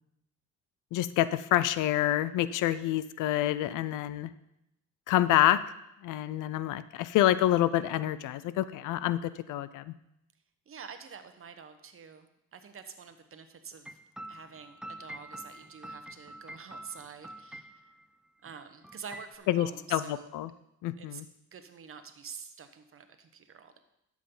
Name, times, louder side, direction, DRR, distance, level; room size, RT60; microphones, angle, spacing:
voice 1, 0.9-4.3 5.1-5.6 6.0-9.9 19.5-20.5 20.8-21.2, left 13 dB, 90° left, 15 dB, 0.5 m, -27 dB
voice 2, 10.7-14.0 14.3-17.9 18.4-20.3 21.0-21.2 21.5-23.8, right 6 dB, 45° right, 8 dB, 1.1 m, -47 dB
sound 1, 13.8-18.1 18.5-18.6 18.8-19.3, right 1 dB, ahead, 0.5 m, -46 dB
12.0 x 7.4 x 3.9 m, 0.83 s
cardioid pair, 90°, 30 cm